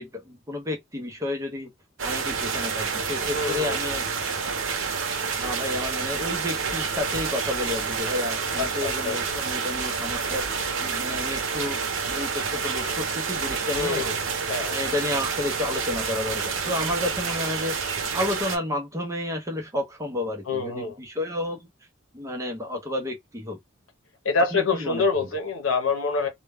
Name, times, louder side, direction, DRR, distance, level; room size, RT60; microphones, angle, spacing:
voice 1, 0.0-1.7 2.0-4.4 5.4-10.5 10.8-11.8 12.1-14.0 14.7-17.8 18.1-21.7 22.1-23.6 24.5-25.0, left 1 dB, 15° right, 0.7 m, -31 dB
sound 1, 2.0-18.6, right 5 dB, 80° right, 0.7 m, -28 dB
voice 2, 3.2-3.8 8.6-9.2 13.7-14.2 14.5-14.8 20.5-21.0 24.2-26.3, left 4 dB, 85° left, 0.7 m, -26 dB
2.2 x 2.2 x 3.3 m
head